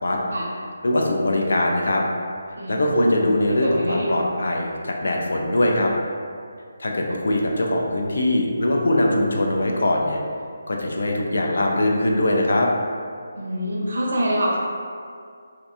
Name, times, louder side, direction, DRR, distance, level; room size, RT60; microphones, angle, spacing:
voice 1, 0.8-2.0 2.7-5.9 6.8-10.2 10.7-12.7, left 1 dB, 65° left, 0 dB, 0.4 m, -21 dB
voice 2, 2.6-3.1 3.5-4.2 13.4-14.6, equal, 60° right, -3 dB, 0.6 m, -25 dB
2.6 x 2.2 x 2.5 m, 2.2 s
hypercardioid pair, 180°, 0 cm